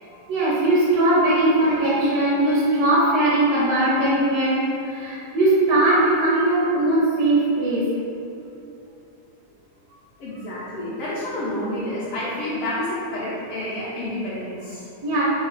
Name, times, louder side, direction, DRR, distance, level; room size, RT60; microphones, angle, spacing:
voice 1, 0.3-7.9 15.0-15.2, right 1 dB, 70° right, -8 dB, 1.6 m, -20 dB
voice 2, 10.2-14.8, left 1 dB, 70° left, -9 dB, 1.4 m, -29 dB
4.6 x 2.5 x 4.0 m, 2.8 s
omnidirectional pair, 3.5 m